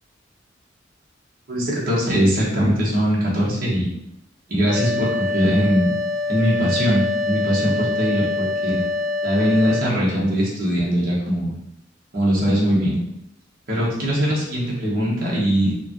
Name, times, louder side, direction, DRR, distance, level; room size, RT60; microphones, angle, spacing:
voice 1, 1.5-3.9 4.5-6.0 6.3-8.8 9.2-11.5 12.1-13.0 13.7-15.7, equal, 50° right, -6 dB, 1.2 m, -21 dB
sound 1, 4.7-9.8, left 3 dB, 80° left, 0.9 m, -25 dB
5.0 x 2.3 x 3.0 m, 0.83 s
head